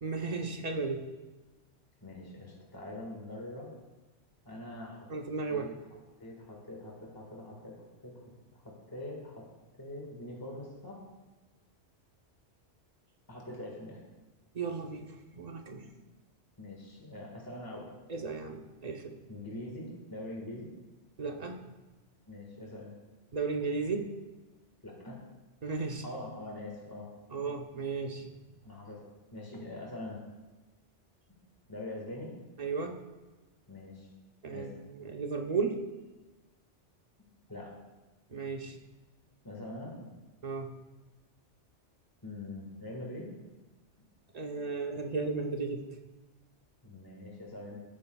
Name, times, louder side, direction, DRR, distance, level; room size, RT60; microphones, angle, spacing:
voice 1, 0.0-1.1 5.1-5.7 14.5-15.9 18.1-19.2 21.2-21.6 23.3-24.1 25.6-26.0 27.3-28.3 32.6-33.0 34.4-34.7 35.0-35.8 38.3-38.8 40.4-40.7 44.3-45.8, right 4 dB, 40° right, 3 dB, 0.9 m, -34 dB
voice 2, 2.0-3.7 4.5-5.1 5.5-5.7 6.2-8.2 8.5-9.5 9.8-11.0 13.3-14.0 16.6-17.9 19.3-20.7 22.3-22.9 24.8-25.2 26.0-27.1 28.6-29.0 29.3-30.2 31.7-32.3 33.7-34.1 34.5-34.8 37.5-37.8 39.4-40.1 42.2-43.3 46.8-47.8, left 1 dB, 20° left, -2 dB, 1.8 m, -43 dB
18.5 x 8.5 x 2.3 m, 1.2 s
omnidirectional pair, 1.2 m